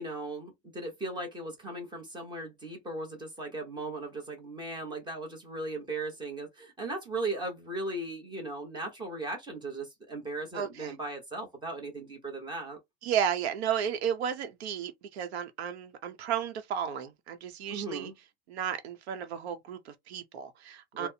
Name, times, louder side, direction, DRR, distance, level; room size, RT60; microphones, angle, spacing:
voice 1, 0.0-12.8 17.7-18.1 20.9-21.1, right 2 dB, 15° right, 0.9 m, -37 dB
voice 2, 10.5-10.9 13.0-18.1 18.5-21.1, right 8 dB, 75° right, 0.8 m, -33 dB
4.1 x 2.1 x 2.7 m
supercardioid pair, 155°, 32 cm